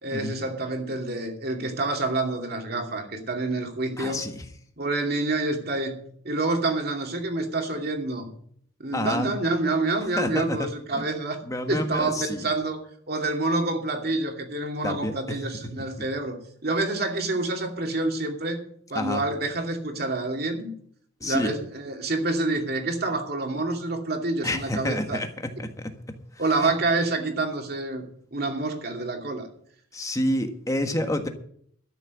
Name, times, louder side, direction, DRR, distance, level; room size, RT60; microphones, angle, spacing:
voice 1, 0.0-4.3 4.8-8.3 8.8-11.4 11.7-12.8 13.1-18.6 18.9-20.7 21.2-25.2 26.4-29.5, right 2 dB, 55° right, 3 dB, 2.6 m, -27 dB
voice 2, 4.0-4.4 8.9-9.3 10.2-10.7 10.9-11.0 11.4-12.5 14.8-15.1 18.9-19.2 21.2-21.5 24.4-25.3 25.6-25.9 26.6-26.7 29.9-31.3, left 1 dB, 15° left, 6 dB, 1.4 m, -28 dB
13.0 x 6.6 x 9.4 m, 0.63 s
head